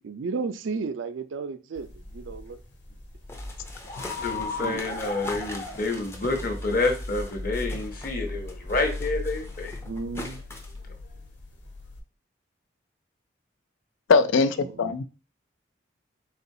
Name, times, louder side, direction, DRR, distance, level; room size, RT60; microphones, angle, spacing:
voice 1, 0.0-2.6 4.1-4.3 4.6-4.9 9.8-10.4 14.6-15.0, right 4 dB, 75° right, 0.4 m, -34 dB
sound 1, 1.8-12.0, left 2 dB, 65° left, 1.1 m, -37 dB
sound 2, 3.3-8.2 8.5-10.8, left 1 dB, 15° left, 0.5 m, -42 dB
voice 2, 4.2-9.8, left 3 dB, 45° left, 0.9 m, -28 dB
voice 3, 14.1-15.0, left 4 dB, 80° left, 0.4 m, -21 dB
4.1 x 3.9 x 2.7 m
head